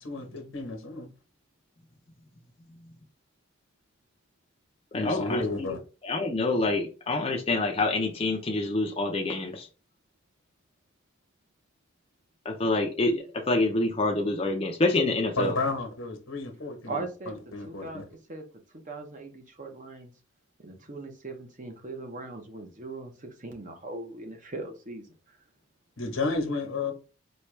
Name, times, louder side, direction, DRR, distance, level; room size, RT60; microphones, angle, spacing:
voice 1, 0.0-1.1 4.9-5.8 15.4-18.0 26.0-26.9, left 3 dB, 80° left, 1.1 m, -32 dB
voice 2, 4.9-5.4 6.0-9.7 12.5-15.6, left 2 dB, 30° left, 0.5 m, -27 dB
voice 3, 16.9-18.4 18.7-20.1 20.6-25.4, right 3 dB, 40° right, 0.8 m, -40 dB
4.3 x 2.3 x 3.2 m
head